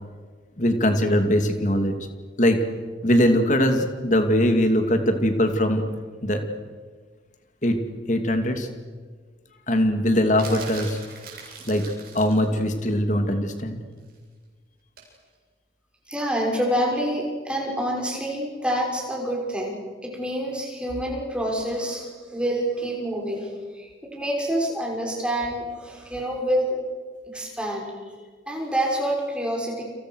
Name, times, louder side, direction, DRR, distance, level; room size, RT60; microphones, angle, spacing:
voice 1, 0.6-1.9 2.4-2.6 3.0-5.8 6.2-6.4 7.6-7.8 8.1-8.7 9.7-11.0 11.7-11.8 12.1-13.8, equal, 40° left, 6 dB, 2.8 m, -21 dB
sound 1, 10.4-12.5 15.0-15.2, right 5 dB, 50° right, 7.6 m, -40 dB
voice 2, 16.1-19.8 20.1-26.8 27.3-27.9 28.5-29.8, equal, 5° right, -1 dB, 6.2 m, -27 dB
30.0 x 27.5 x 6.6 m, 1.5 s
head